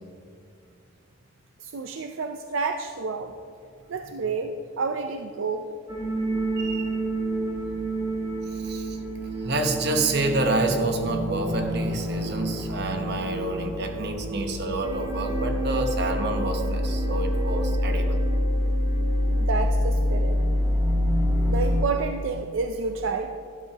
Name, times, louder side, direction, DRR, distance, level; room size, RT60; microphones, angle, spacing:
voice 1, 1.6-3.3 3.9-5.7 19.3-20.4 21.5-23.3, right 4 dB, 75° right, 6 dB, 0.5 m, -29 dB
sound 1, 5.9-21.8, equal, 20° right, 1.9 m, -26 dB
voice 2, 6.6-6.9 8.5-9.0 9.4-18.2, right 2 dB, 55° right, 5 dB, 1.0 m, -28 dB
12.0 x 12.0 x 2.9 m, 2.4 s
head